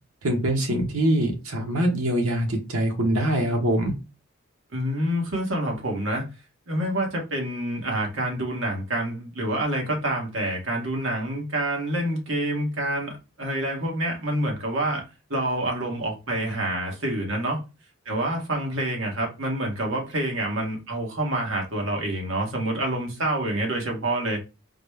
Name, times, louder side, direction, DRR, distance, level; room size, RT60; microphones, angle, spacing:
voice 1, 0.2-3.9, right 1 dB, 90° right, 1.1 m, -23 dB
voice 2, 4.7-6.3 6.7-15.0 15.3-17.6 18.0-24.4, right 1 dB, 65° right, 1.2 m, -27 dB
3.9 x 2.1 x 3.4 m
head